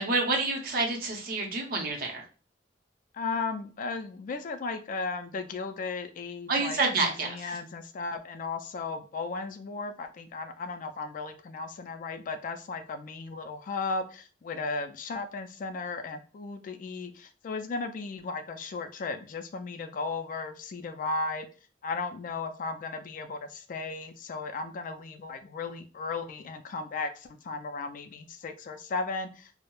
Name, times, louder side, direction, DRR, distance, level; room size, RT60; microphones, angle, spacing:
voice 1, 0.0-2.3 6.5-7.5, right 3 dB, 55° right, 1 dB, 0.6 m, -28 dB
voice 2, 3.1-21.5 21.8-29.5, left 4 dB, 45° left, 7 dB, 0.3 m, -35 dB
2.2 x 2.0 x 3.0 m, 0.36 s
head